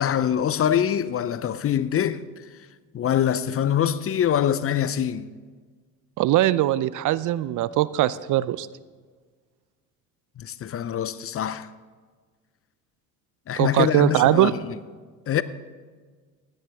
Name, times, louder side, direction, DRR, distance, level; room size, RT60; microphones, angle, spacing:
voice 1, 0.0-2.3 2.9-5.3 10.4-11.7 13.5-14.7 15.3-15.4, left 9 dB, 35° left, 0.6 m, -24 dB
voice 2, 6.2-8.7 13.6-14.5, right 14 dB, 50° right, 0.5 m, -21 dB
16.5 x 11.5 x 3.5 m
hypercardioid pair, 75°, 42 cm